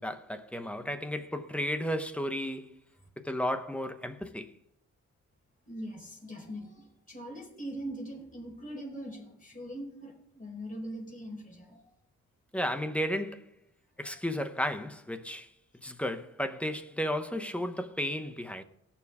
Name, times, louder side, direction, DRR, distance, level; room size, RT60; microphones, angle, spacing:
voice 1, 0.0-2.7 3.2-4.5 12.5-13.5 14.0-15.5 15.8-18.6, equal, 5° left, 0.9 m, -33 dB
voice 2, 5.7-11.9 14.0-14.2, equal, 30° left, 4.4 m, -42 dB
18.5 x 7.1 x 3.6 m
cardioid pair, 100°, 29 cm